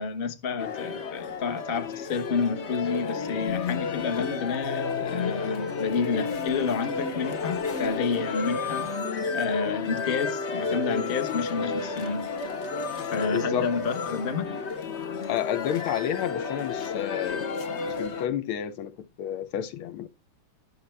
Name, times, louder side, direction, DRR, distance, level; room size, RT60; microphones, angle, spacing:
voice 1, 0.0-8.9 9.3-12.3 13.1-14.6, left 5 dB, 40° left, 0.9 m, -30 dB
sound 1, 0.6-18.3, left 5 dB, 65° left, 0.6 m, -31 dB
voice 2, 13.3-13.7 15.2-17.4 17.8-20.1, left 10 dB, 85° left, 1.6 m, -30 dB
11.0 x 6.3 x 3.3 m
omnidirectional pair, 2.3 m